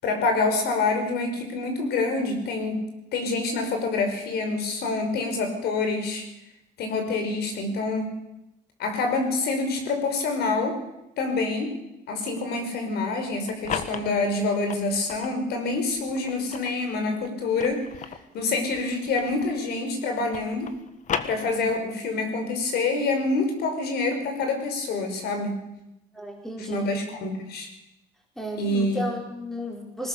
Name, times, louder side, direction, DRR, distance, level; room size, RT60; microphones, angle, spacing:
voice 1, 0.0-2.8 3.1-6.2 6.8-8.1 8.8-10.8 11.2-11.7 12.1-17.8 18.3-20.7 21.2-25.5 26.6-27.7 28.6-29.0, left 3 dB, 70° left, 5 dB, 5.4 m, -26 dB
sound 1, 13.2-15.4 15.9-19.7 20.0-22.0, left 7 dB, 45° left, 1.6 m, -36 dB
voice 2, 26.1-26.9 28.4-30.1, equal, ahead, 0 dB, 4.5 m, -33 dB
20.5 x 18.0 x 7.0 m, 0.89 s
cardioid pair, 110°, 17 cm